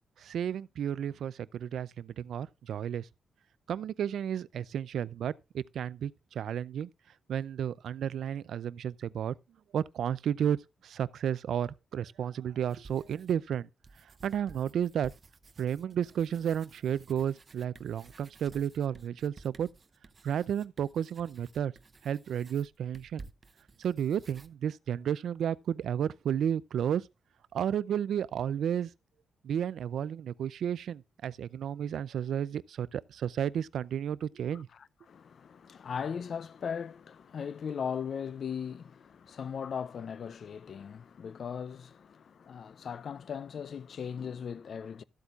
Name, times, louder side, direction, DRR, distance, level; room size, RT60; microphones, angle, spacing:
voice 1, 0.2-3.1 3.7-6.9 7.3-9.3 9.7-13.7 14.2-15.1 15.6-19.7 20.2-21.7 22.0-23.3 23.8-27.1 27.5-28.9 29.4-34.7, right 9 dB, 75° right, 0.4 m, -32 dB
sound 1, 12.7-13.5 13.8-24.5, right 3 dB, 30° right, 0.7 m, -54 dB
voice 2, 34.7-45.0, left 7 dB, 50° left, 0.4 m, -38 dB
13.0 x 8.2 x 2.4 m
wide cardioid pair, 155°, 0 cm